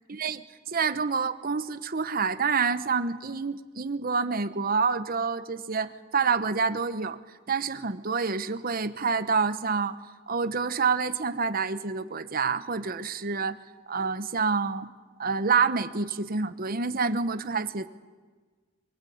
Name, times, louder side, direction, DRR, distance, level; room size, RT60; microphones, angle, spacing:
voice 1, 0.1-7.2 7.5-10.0 10.3-13.6 13.9-14.9 15.2-17.9, right 5 dB, 50° right, 10 dB, 1.1 m, -27 dB
24.0 x 23.5 x 8.6 m, 1.4 s
head